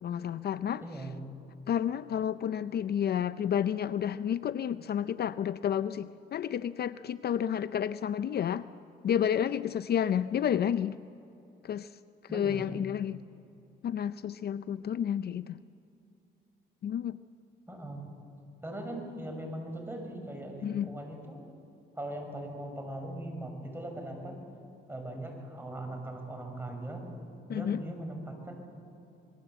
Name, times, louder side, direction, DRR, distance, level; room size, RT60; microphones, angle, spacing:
voice 1, 0.0-0.8 1.7-8.7 9.0-11.0 11.6-12.0 12.3-13.2 13.8-15.6 16.8-17.2 20.6-20.9 27.5-27.8, left 9 dB, 55° left, 14 dB, 0.6 m, -30 dB
voice 2, 0.8-1.2 12.3-12.6 17.7-18.1 18.6-21.4 22.0-24.4 24.9-27.0 27.5-28.6, right 1 dB, 10° right, 2 dB, 6.1 m, -40 dB
26.0 x 20.5 x 8.1 m, 2.8 s
cardioid pair, 90°, 20 cm